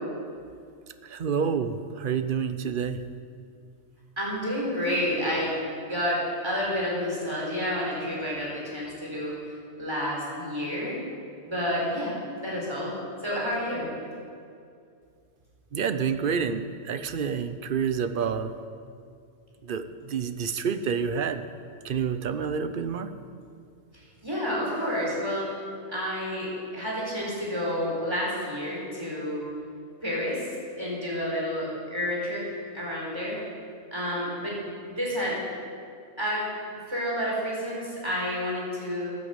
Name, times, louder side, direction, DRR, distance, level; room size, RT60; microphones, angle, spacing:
voice 1, 1.0-3.0 15.7-18.5 19.6-21.4 21.8-23.1, right 6 dB, 55° right, 11 dB, 0.9 m, -28 dB
voice 2, 4.2-5.5 5.9-9.3 9.8-11.0 11.5-12.9 13.2-13.9 24.2-25.5 25.9-29.4 30.0-30.5 30.8-32.4 32.7-33.4 33.9-34.6 34.9-35.4 36.2-36.4 36.9-39.1, equal, 25° right, -5 dB, 4.6 m, -29 dB
14.0 x 9.4 x 8.1 m, 2.3 s
omnidirectional pair, 1.2 m